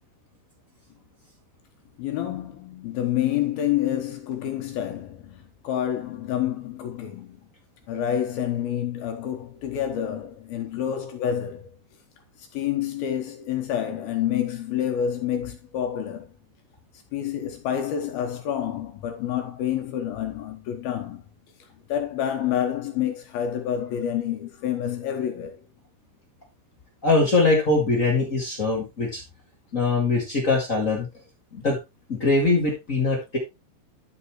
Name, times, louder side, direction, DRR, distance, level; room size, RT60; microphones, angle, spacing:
voice 1, 2.0-7.4 7.9-11.7 12.5-16.3 17.1-21.2 21.9-25.6, left 10 dB, 75° left, 2.4 m, -28 dB
voice 2, 27.0-29.2 29.7-31.1 31.5-31.8 32.1-33.4, left 3 dB, 55° left, 0.9 m, -22 dB
11.5 x 6.9 x 3.1 m
omnidirectional pair, 5.3 m